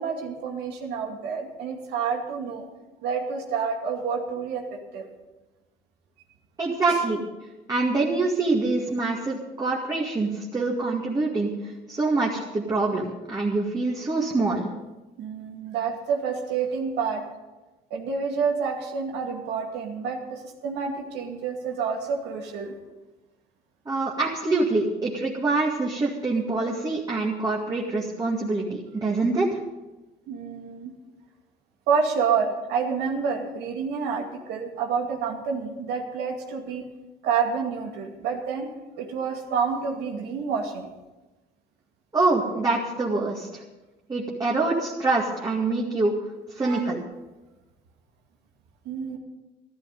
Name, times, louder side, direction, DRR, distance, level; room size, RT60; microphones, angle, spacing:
voice 1, 0.0-2.7 3.0-5.1 15.2-17.2 17.9-22.7 30.3-30.9 31.9-36.8 37.2-38.7 39.0-40.9 46.6-46.9 48.9-49.2, right 6 dB, 85° right, 1 dB, 2.4 m, -28 dB
voice 2, 6.6-7.2 7.7-11.5 11.9-14.7 23.9-29.5 42.1-43.6 44.1-46.1 46.5-47.0, right 3 dB, 20° right, -3 dB, 2.2 m, -25 dB
13.5 x 13.0 x 5.4 m, 1.1 s
cardioid pair, 110°, 17 cm